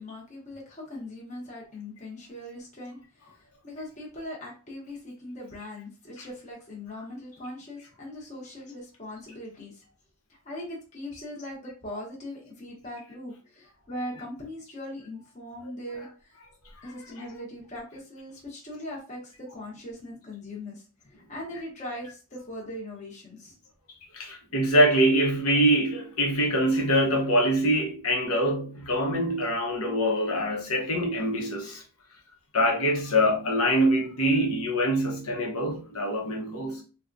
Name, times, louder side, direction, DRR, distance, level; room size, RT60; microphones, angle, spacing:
voice 1, 0.0-9.8 10.4-16.3 16.8-23.5, left 1 dB, 35° left, 1.0 m, -40 dB
voice 2, 24.1-31.8 32.5-36.8, equal, 80° left, 0.9 m, -24 dB
3.5 x 2.3 x 2.6 m
head